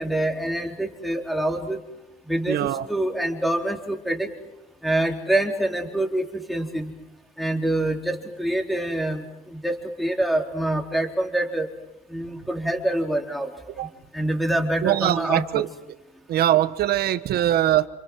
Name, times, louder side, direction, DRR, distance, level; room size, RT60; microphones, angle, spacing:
voice 1, 0.0-1.8 2.3-4.3 4.8-6.9 7.4-9.2 9.6-11.6 12.1-13.5 14.1-15.6, right 1 dB, ahead, 2 dB, 3.9 m, -25 dB
voice 2, 2.5-2.9 13.8-13.9 14.8-15.7 16.3-17.9, right 12 dB, 65° right, 13 dB, 1.3 m, -22 dB
28.5 x 26.0 x 6.3 m, 0.96 s
cardioid pair, 110°, 17 cm